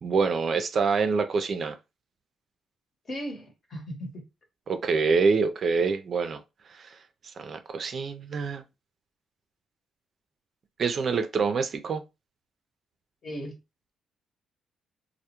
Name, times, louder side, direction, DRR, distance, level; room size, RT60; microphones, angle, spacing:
voice 1, 0.0-1.8 4.7-6.4 6.7-7.0 7.4-8.6 10.8-12.0, right 5 dB, 50° right, 0.3 m, -26 dB
voice 2, 3.1-4.2 13.2-13.6, equal, 40° left, 0.9 m, -37 dB
2.2 x 2.0 x 2.9 m
cardioid pair, 90°, 0 cm